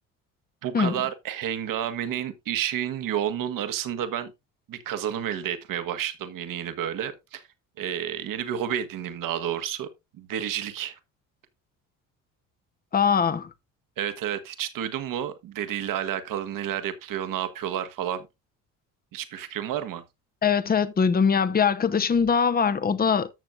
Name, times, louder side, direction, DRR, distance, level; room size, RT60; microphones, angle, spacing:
voice 1, 0.6-4.3 4.7-7.4 7.8-9.9 10.2-11.0 14.0-18.3 19.1-20.0, right 10 dB, 60° right, 1.5 m, -30 dB
voice 2, 12.9-13.5 20.4-23.3, left 6 dB, 25° left, 0.9 m, -22 dB
14.0 x 6.6 x 2.5 m
hypercardioid pair, 65°, 36 cm